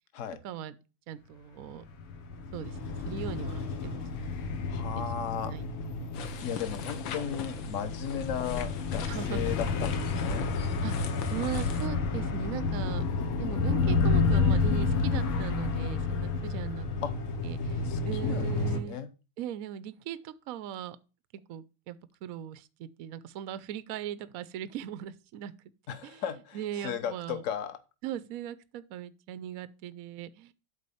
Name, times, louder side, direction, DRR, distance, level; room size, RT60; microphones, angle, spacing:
voice 1, 0.4-0.8 1.1-1.8 2.5-4.5 5.0-5.7 9.1-9.5 10.8-10.9 11.3-13.0 13.4-16.9 17.4-19.0 19.4-21.0 21.5-25.5 26.0-26.2 26.5-27.4 28.0-30.5, right 10 dB, 80° right, 0.7 m, -39 dB
sound 1, 1.9-18.8, left 4 dB, 90° left, 2.0 m, -30 dB
voice 2, 4.7-5.5 6.4-10.5 17.0-17.1 17.8-19.1 25.9-27.8, left 8 dB, 50° left, 1.0 m, -36 dB
sound 2, 6.1-11.9, left 5 dB, 70° left, 1.7 m, -39 dB
8.4 x 4.1 x 7.0 m
omnidirectional pair, 2.2 m